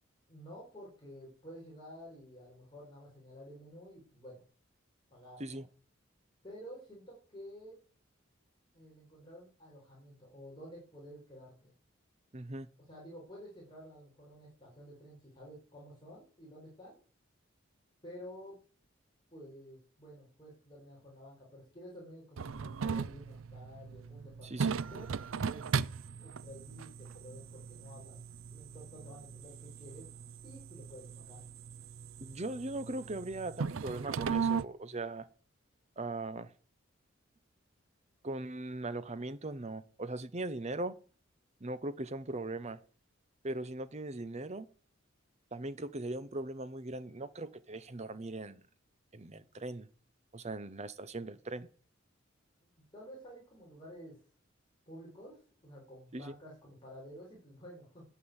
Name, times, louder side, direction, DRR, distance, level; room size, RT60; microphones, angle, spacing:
voice 1, 0.3-4.4 5.1-5.6 6.4-7.8 8.7-11.7 12.9-17.0 18.0-18.6 19.3-25.1 25.4-25.7 26.2-28.2 28.5-30.1 30.4-31.4 52.6-54.2 54.9-58.0, equal, 25° left, 4.7 m, -51 dB
voice 2, 12.3-12.7 24.4-24.8 32.2-35.3 36.0-36.5 38.2-40.9 41.6-42.8 43.4-44.7 45.5-48.6 49.1-49.9 50.3-51.7 56.1-56.3, right 2 dB, 35° right, 0.9 m, -39 dB
sound 1, 22.4-34.6, right 5 dB, 85° right, 0.5 m, -38 dB
9.5 x 8.8 x 8.1 m
head